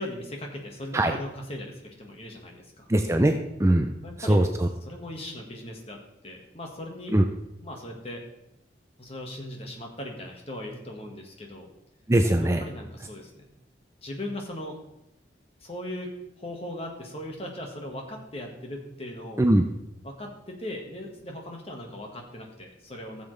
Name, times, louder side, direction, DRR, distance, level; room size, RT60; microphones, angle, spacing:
voice 1, 0.0-2.9 4.0-4.4 4.8-7.2 7.6-8.2 9.0-11.7 12.4-13.4 14.0-14.8 15.6-19.4 20.0-23.2, left 1 dB, 35° left, 1 dB, 1.7 m, -38 dB
voice 2, 2.9-3.9 4.3-4.7 7.1-7.2 12.1-12.6 19.4-19.6, right 1 dB, 15° right, 5 dB, 0.5 m, -21 dB
15.0 x 7.2 x 3.4 m, 0.86 s
head